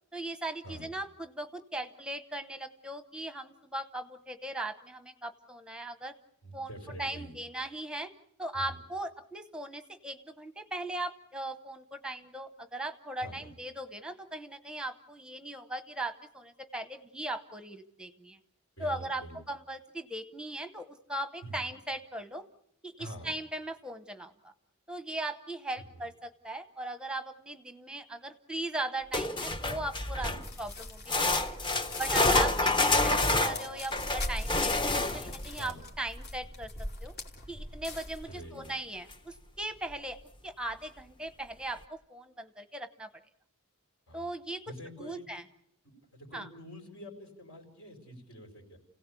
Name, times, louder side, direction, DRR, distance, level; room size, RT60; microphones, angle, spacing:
voice 1, 0.1-6.1 6.5-6.7 7.0-8.1 8.4-18.4 18.8-22.4 22.8-24.5 24.9-30.3 30.6-31.6 32.0-36.7 37.0-37.1 37.5-40.2 40.4-43.1 44.1-44.6 45.0-45.4 46.3-46.5, right 1 dB, 5° right, 10 dB, 0.9 m, -39 dB
voice 2, 6.4-7.3 8.5-8.7 13.2-13.5 18.8-19.4 21.4-21.7 23.0-23.3 25.8-26.0 30.2-30.4 32.2-32.5 35.6-35.8 38.2-38.7 44.1-44.2 44.7-45.3 45.8-48.8, right 1 dB, 70° left, 3 dB, 5.2 m, -45 dB
sound 1, 29.1-30.5 31.1-35.4 38.6-38.7 39.1-39.2 39.9-40.0, left 2 dB, 25° left, 0.9 m, -28 dB
sound 2, 30.4-38.3, left 1 dB, 50° left, 2.9 m, -41 dB
30.0 x 17.0 x 8.3 m, 0.76 s
head